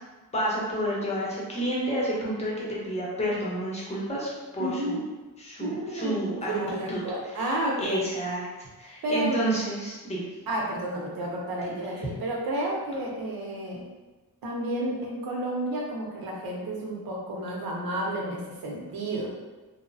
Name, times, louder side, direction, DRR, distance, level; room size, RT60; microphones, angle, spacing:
voice 1, 0.3-5.0 5.4-7.0 7.3-7.5 7.8-8.4 8.8-10.3 11.7-11.8, right 1 dB, 20° left, -5 dB, 0.7 m, -30 dB
voice 2, 4.6-5.0 5.6-6.2 6.5-8.0 9.0-9.4 10.5-13.8 14.4-19.3, right 1 dB, 75° right, -2 dB, 0.7 m, -31 dB
3.0 x 2.0 x 2.6 m, 1.2 s
wide cardioid pair, 140°, 36 cm